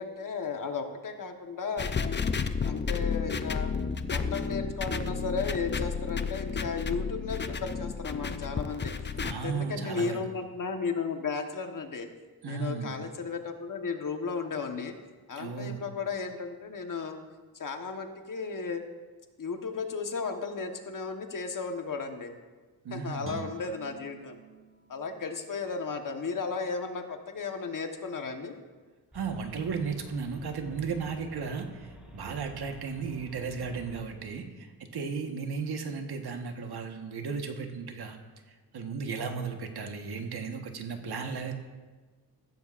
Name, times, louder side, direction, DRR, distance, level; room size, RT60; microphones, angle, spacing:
voice 1, 0.0-1.9 2.6-3.7 4.1-8.9 9.2-12.1 12.4-14.9 15.3-17.2 17.6-18.8 19.4-22.3 22.9-24.4 24.9-28.5, left 5 dB, 55° left, 5 dB, 1.3 m, -34 dB
sound 1, 1.8-9.3, left 5 dB, 30° left, 0.6 m, -32 dB
voice 2, 9.2-10.2 12.4-13.0 15.4-15.8 22.8-23.4 29.1-34.7 34.9-38.2 38.7-41.5, right 5 dB, 80° right, 4 dB, 1.4 m, -35 dB
Guitar, 23.2-26.4 26.8-27.0, right 5 dB, 35° right, 0.9 m, -48 dB
sound 2, 29.1-34.3, right 1 dB, 5° right, 3.4 m, -49 dB
15.0 x 13.5 x 2.5 m, 1.3 s
cardioid pair, 90°, 38 cm